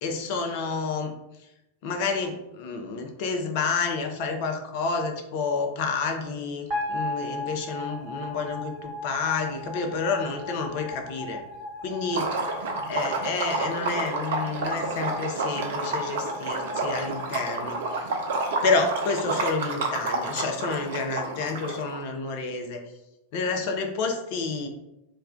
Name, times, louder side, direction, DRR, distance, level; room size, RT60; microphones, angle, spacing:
voice 1, 0.0-1.1 1.8-11.4 11.8-12.3 12.9-18.2 18.6-22.8 23.3-24.7, left 4 dB, 50° left, 3 dB, 0.4 m, -29 dB
sound 1, 6.7-19.0, left 1 dB, 40° right, 1.0 m, -37 dB
Liquid, 12.1-22.0, right 3 dB, 55° right, 0.4 m, -30 dB
2.3 x 2.2 x 3.5 m, 0.91 s
figure-of-eight pair, 90°, 0 cm